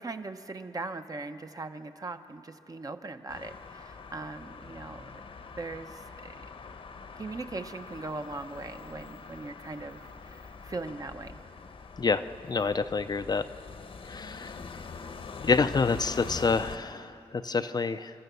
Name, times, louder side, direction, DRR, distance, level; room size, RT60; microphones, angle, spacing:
voice 1, 0.0-5.1 5.6-6.3 7.2-11.4, right 3 dB, 35° right, 7 dB, 0.9 m, -40 dB
sound 1, 3.3-16.8, left 4 dB, 55° left, 1.0 m, -44 dB
voice 2, 12.5-13.4 14.1-14.8 15.4-18.1, left 4 dB, 40° left, 10 dB, 0.5 m, -27 dB
29.5 x 13.0 x 6.9 m, 2.8 s
wide cardioid pair, 105°, 11 cm